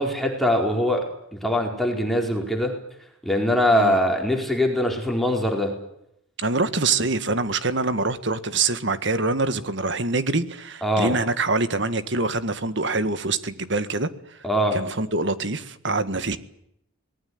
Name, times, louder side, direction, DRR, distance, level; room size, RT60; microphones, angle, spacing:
voice 1, 0.0-2.7 3.2-5.7 10.8-11.1 14.4-14.8, equal, ahead, 1 dB, 4.4 m, -22 dB
voice 2, 6.4-14.4 14.7-16.4, right 3 dB, 60° right, 12 dB, 1.8 m, -25 dB
24.5 x 19.5 x 9.5 m, 0.77 s
head